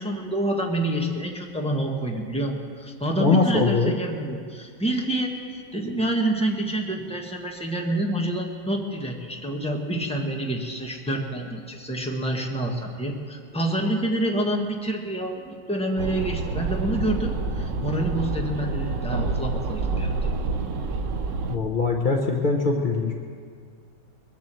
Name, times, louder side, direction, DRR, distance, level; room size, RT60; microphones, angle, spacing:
voice 1, 0.0-20.1, right 1 dB, 5° left, 1 dB, 0.9 m, -27 dB
voice 2, 3.2-4.0 21.5-23.1, left 4 dB, 70° left, 1 dB, 0.4 m, -22 dB
sound 1, 16.0-21.6, right 3 dB, 65° right, 0.7 m, -28 dB
21.0 x 7.4 x 7.5 m, 2.1 s
omnidirectional pair, 2.2 m